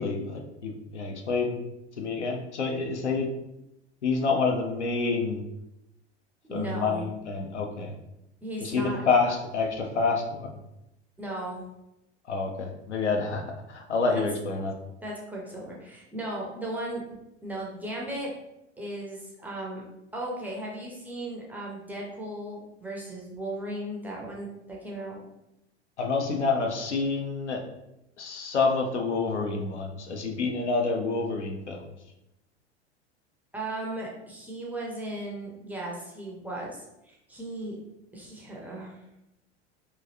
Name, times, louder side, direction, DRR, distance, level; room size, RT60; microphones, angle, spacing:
voice 1, 0.0-1.6 2.0-3.3 4.0-5.4 6.5-7.9 8.6-10.6 12.3-14.7 26.0-27.6 28.2-31.8, left 4 dB, 75° left, 3 dB, 0.6 m, -28 dB
voice 2, 6.4-7.0 8.4-9.0 11.2-11.6 14.1-14.2 15.0-18.3 18.8-19.8 20.1-25.2 33.5-37.8 38.1-39.0, right 1 dB, 5° right, -3 dB, 0.4 m, -36 dB
3.0 x 2.4 x 2.7 m, 0.89 s
figure-of-eight pair, 85°, 34 cm